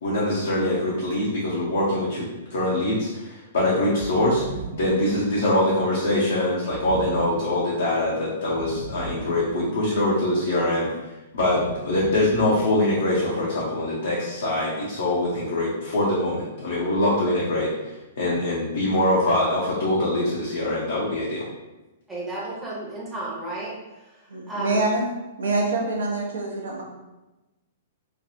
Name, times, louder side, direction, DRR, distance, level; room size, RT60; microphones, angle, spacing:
voice 1, 0.0-4.4 4.7-10.9 11.3-21.4, left 1 dB, 65° left, -6 dB, 0.7 m, -23 dB
sound 1, 4.0-5.4 6.7-7.7 8.5-10.0 11.3-12.8, right 3 dB, 85° left, 1.3 m, -37 dB
voice 2, 22.1-23.7 24.5-24.8, right 2 dB, 10° right, -6 dB, 0.8 m, -32 dB
voice 3, 24.3-25.1 25.4-26.8, right 2 dB, 70° right, -1 dB, 0.8 m, -25 dB
3.2 x 2.3 x 2.7 m, 1.0 s
figure-of-eight pair, 110°, 0 cm